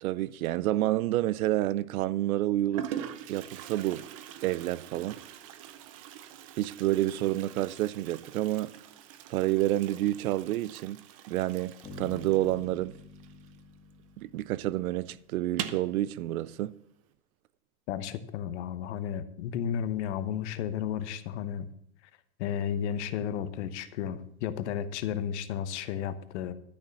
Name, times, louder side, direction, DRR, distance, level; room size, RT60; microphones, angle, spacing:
voice 1, 0.0-2.9 3.3-4.0 4.4-5.2 6.6-8.7 9.3-12.9 14.2-16.7, right 15 dB, 75° right, 0.6 m, -29 dB
Toilet flush, 1.2-1.7 2.4-2.5 2.7-14.0 14.3-14.4 14.7-14.8 15.4-15.9, right 10 dB, 25° right, 0.4 m, -43 dB
Bass guitar, 11.8-15.6, left 3 dB, 15° left, 2.1 m, -49 dB
voice 2, 17.9-21.7 22.4-26.5, left 9 dB, 50° left, 1.0 m, -33 dB
12.0 x 6.6 x 7.0 m
supercardioid pair, 155°, 44 cm